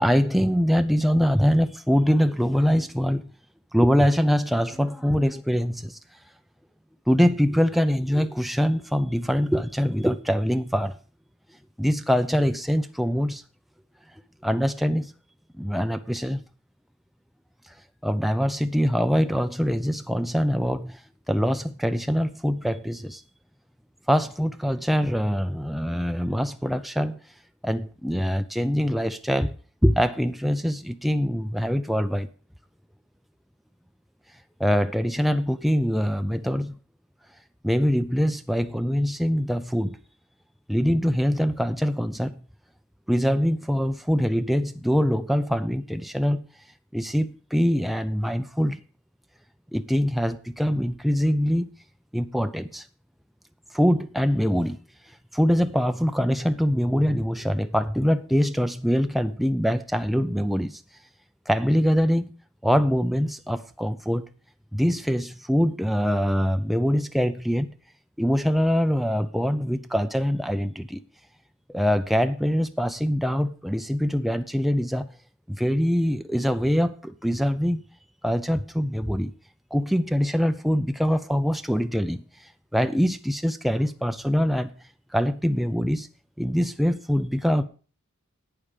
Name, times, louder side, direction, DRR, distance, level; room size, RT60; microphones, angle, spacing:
voice 1, 0.0-3.3 3.7-6.0 7.1-10.9 11.8-13.4 14.4-15.1 15.6-16.4 17.7-17.8 18.0-21.0 21.3-23.2 24.1-27.2 27.6-29.6 29.8-32.3 34.6-36.8 37.6-40.0 40.7-42.3 43.1-46.4 46.9-48.8 49.7-51.7 52.1-52.9 53.7-54.8 55.3-60.8 61.5-62.3 62.6-64.3 64.7-67.7 68.2-71.0 71.7-75.1 75.5-77.8 78.2-79.3 79.7-84.7 85.1-86.1 86.4-87.6, equal, ahead, 0.4 m, -23 dB
11.0 x 8.7 x 5.1 m
head